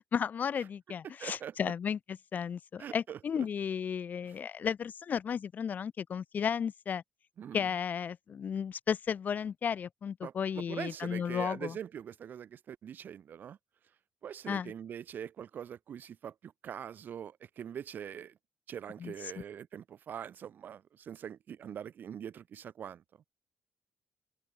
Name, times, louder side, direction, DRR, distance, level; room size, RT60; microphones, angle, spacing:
voice 1, 0.1-7.0 7.5-11.8 14.5-14.7 19.0-19.4, left 7 dB, 45° left, 0.5 m, -34 dB
voice 2, 1.2-1.7 2.8-3.2 7.4-7.7 10.2-13.6 14.2-18.3 18.7-23.0, right 8 dB, 50° right, 0.7 m, -43 dB
open air
figure-of-eight pair, 45°, 4 cm